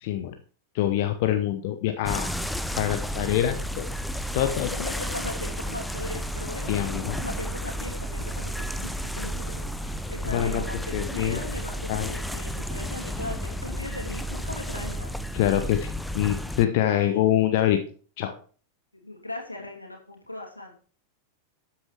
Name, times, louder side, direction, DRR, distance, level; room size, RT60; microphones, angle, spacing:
voice 1, 0.0-0.3 0.7-2.3 2.8-3.9 4.3-4.7 6.7-7.2 10.3-10.6 10.9-11.4 11.9-12.1 15.3-15.9 16.1-17.8 18.2-18.3, left 12 dB, 50° left, 7 dB, 0.9 m, -25 dB
sound 1, 2.1-16.7, equal, 5° left, 0.7 m, -32 dB
voice 2, 4.7-15.2 16.8-17.3 18.9-20.7, left 1 dB, 85° left, -1 dB, 3.0 m, -38 dB
12.5 x 8.8 x 3.3 m, 0.42 s
figure-of-eight pair, 90°, 0 cm